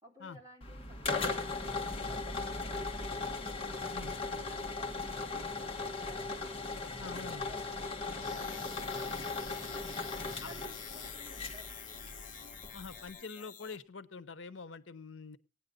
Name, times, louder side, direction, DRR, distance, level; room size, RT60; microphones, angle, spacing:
voice 1, 0.0-3.3 3.8-6.3 7.0-9.5 9.9-12.0, right 1 dB, 20° right, 1 dB, 3.3 m, -56 dB
sound 1, 0.6-13.1, left 3 dB, 30° left, 1.5 m, -38 dB
voice 2, 7.0-7.5 8.9-9.0 10.4-10.5 12.7-15.4, left 4 dB, 90° left, 15 dB, 0.8 m, -45 dB
sound 2, 7.8-13.8, left 8 dB, 45° left, 1.2 m, -49 dB
17.5 x 9.7 x 3.9 m, 0.29 s
head